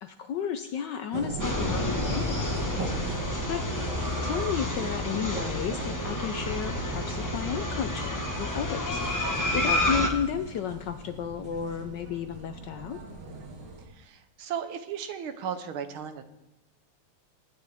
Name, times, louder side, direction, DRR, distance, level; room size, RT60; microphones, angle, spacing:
voice 1, 0.0-3.2 3.5-3.6 4.2-13.0, left 8 dB, 70° left, 8 dB, 1.0 m, -33 dB
sound 1, 1.1-13.9, right 3 dB, 55° right, 2.1 m, -39 dB
sound 2, 1.4-10.1, left 1 dB, 25° left, 0.4 m, -30 dB
voice 2, 13.8-16.2, right 8 dB, 75° right, 9 dB, 1.7 m, -36 dB
19.5 x 9.6 x 3.4 m, 0.93 s
omnidirectional pair, 2.4 m